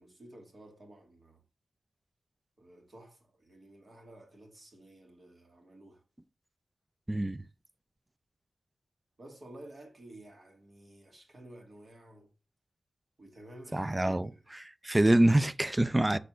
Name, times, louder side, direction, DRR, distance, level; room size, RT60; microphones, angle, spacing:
voice 1, 0.0-1.4 2.6-6.0 9.2-12.3 13.2-14.4 16.1-16.2, right 1 dB, 50° right, 2.2 m, -52 dB
voice 2, 7.1-7.4 13.7-16.2, right 1 dB, 15° right, 0.4 m, -26 dB
6.7 x 4.1 x 6.1 m
wide cardioid pair, 90°, 0 cm